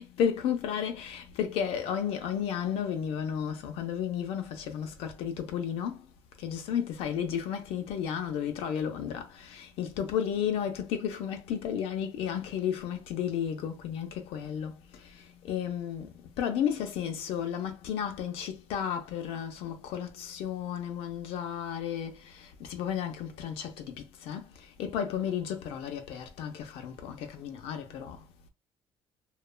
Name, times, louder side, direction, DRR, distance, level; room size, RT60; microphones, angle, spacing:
voice 1, 0.0-6.1 6.4-28.2, left 8 dB, 90° left, 0.6 m, -33 dB
3.0 x 2.3 x 2.2 m
cardioid pair, 140°, 10 cm